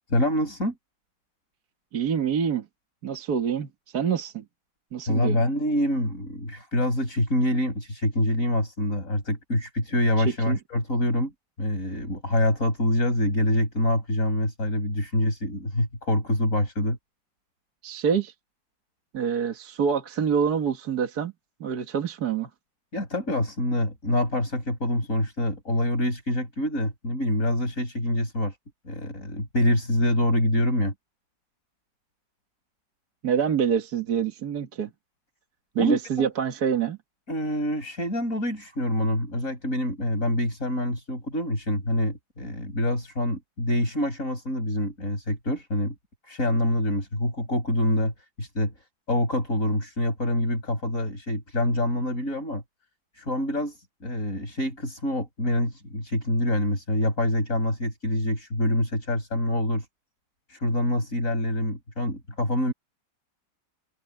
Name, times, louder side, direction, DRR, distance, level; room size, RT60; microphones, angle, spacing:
voice 1, 0.1-0.7 5.1-11.3 11.6-17.0 22.9-28.6 28.9-30.9 35.8-36.3 37.3-45.9 46.3-48.7 49.1-52.6 53.2-59.9 60.5-62.7, left 1 dB, 40° left, 8.3 m, -26 dB
voice 2, 1.9-2.7 3.0-4.4 4.9-5.4 10.2-10.6 17.8-18.3 19.1-21.3 21.6-22.5 33.2-34.9 35.8-37.0, right 7 dB, 55° right, 1.9 m, -26 dB
open air
omnidirectional pair, 2.1 m